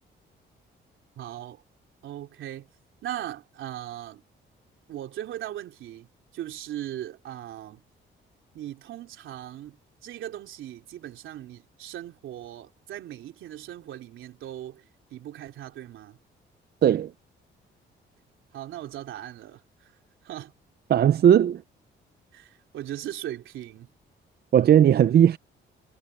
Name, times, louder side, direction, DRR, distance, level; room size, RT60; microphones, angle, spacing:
voice 1, 1.2-1.6 2.0-2.7 3.0-4.2 4.9-7.8 8.5-9.8 10.0-14.8 15.1-16.2 18.5-19.9 20.2-20.5 22.3-23.9, right 12 dB, 80° right, 3.3 m, -38 dB
voice 2, 20.9-21.6 24.5-25.4, right 10 dB, 55° right, 0.7 m, -17 dB
cardioid pair, 90°, 20 cm